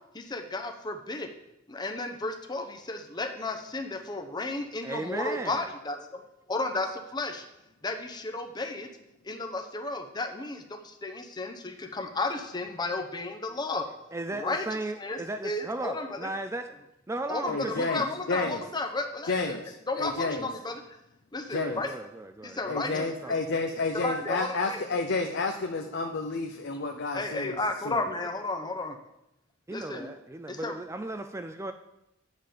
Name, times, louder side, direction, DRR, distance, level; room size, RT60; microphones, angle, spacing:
voice 1, 0.1-1.3 1.7-7.4 7.8-8.9 9.2-13.8 14.4-14.6 15.0-16.3 17.3-19.6 19.9-20.8 21.3-21.9 22.4-23.3 23.9-24.8 27.1-29.0 29.7-30.1 30.5-30.7, left 2 dB, 20° left, 5 dB, 0.8 m, -33 dB
voice 2, 4.8-5.7 14.1-16.8 17.1-18.1 21.5-23.4 29.7-31.7, right 2 dB, 15° right, 7 dB, 0.3 m, -36 dB
voice 3, 17.5-18.6 19.2-20.5 21.5-21.8 22.7-28.0, left 3 dB, 60° left, 4 dB, 0.7 m, -31 dB
9.1 x 7.5 x 5.1 m, 0.87 s
head